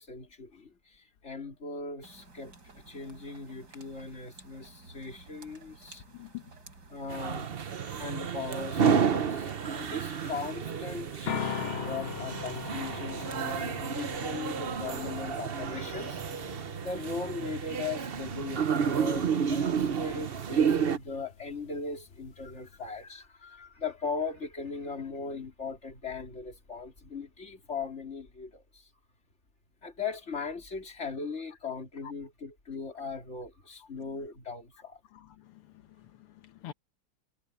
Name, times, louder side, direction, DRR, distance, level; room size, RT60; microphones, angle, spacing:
voice 1, 0.0-6.0 6.9-7.5 8.0-16.2 16.8-28.9 29.8-35.0, left 4 dB, 30° left, 3.7 m, -39 dB
sound 1, 2.0-15.5, right 3 dB, 50° right, 4.5 m, -54 dB
voice 2, 6.1-6.4 35.1-35.7 36.0-36.7, left 14 dB, 85° left, 2.1 m, -46 dB
sound 2, 7.1-21.0, right 7 dB, 70° right, 0.5 m, -31 dB
sound 3, 11.3-23.0, left 8 dB, 70° left, 0.7 m, -42 dB
omnidirectional pair, 2.4 m